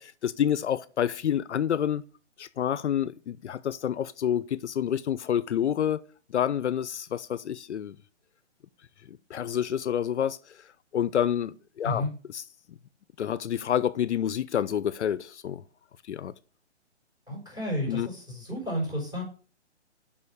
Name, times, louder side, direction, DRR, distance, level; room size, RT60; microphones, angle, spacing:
voice 1, 0.0-2.0 2.4-6.0 6.3-8.0 9.3-10.4 10.9-12.4 13.2-15.6 16.1-16.3 17.9-18.1, left 9 dB, 75° left, 0.6 m, -28 dB
voice 2, 17.3-19.2, left 1 dB, 10° right, 4.5 m, -31 dB
6.8 x 5.5 x 4.9 m
hypercardioid pair, 145°, 35 cm